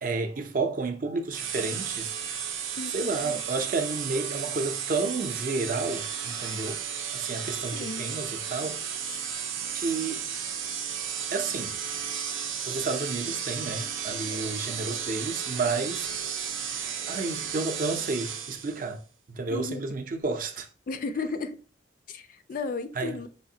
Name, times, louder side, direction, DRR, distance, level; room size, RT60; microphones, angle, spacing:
voice 1, 0.0-2.1 2.9-6.8 7.1-8.8 9.7-10.3 11.3-11.8 12.7-16.1 17.1-19.0 19.3-20.7 22.9-23.2, right 3 dB, 45° right, 0.4 m, -31 dB
sound 1, 1.3-18.9, right 8 dB, 90° right, 0.6 m, -34 dB
voice 2, 2.8-3.4 7.7-8.0 9.1-9.2 19.5-19.8 20.9-21.6 22.1-23.3, left 4 dB, 45° left, 0.3 m, -34 dB
4.9 x 2.5 x 2.7 m
head